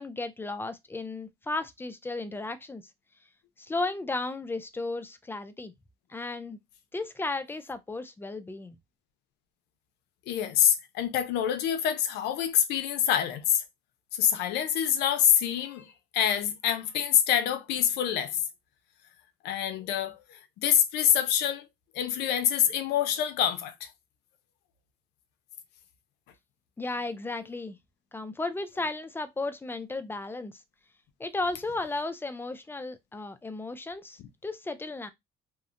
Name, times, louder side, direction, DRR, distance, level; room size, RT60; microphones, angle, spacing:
voice 1, 0.0-2.8 3.6-5.7 6.1-6.6 6.9-8.8 26.8-27.8 28.1-30.5 31.2-35.1, left 2 dB, 15° left, 0.3 m, -34 dB
voice 2, 10.3-13.6 14.1-18.4 19.4-21.7 21.9-23.9 34.2-34.3, left 9 dB, 85° left, 0.5 m, -26 dB
2.7 x 2.0 x 2.4 m
cardioid pair, 110°, 17 cm